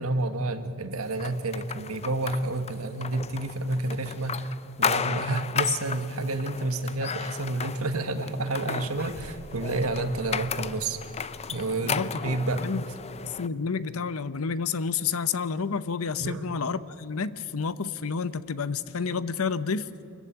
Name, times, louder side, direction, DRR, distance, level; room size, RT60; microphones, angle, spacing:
voice 1, 0.0-11.0 11.5-12.7 16.2-16.4, right 2 dB, 70° right, 9 dB, 1.5 m, -30 dB
sound 1, 1.2-13.5, left 6 dB, 30° left, 0.5 m, -34 dB
sound 2, 8.9-13.0, equal, 50° right, 4.4 m, -49 dB
voice 2, 11.8-12.3 12.6-12.8 13.2-19.9, left 5 dB, 70° left, 15 dB, 0.8 m, -30 dB
24.5 x 14.5 x 9.4 m, 2.8 s
head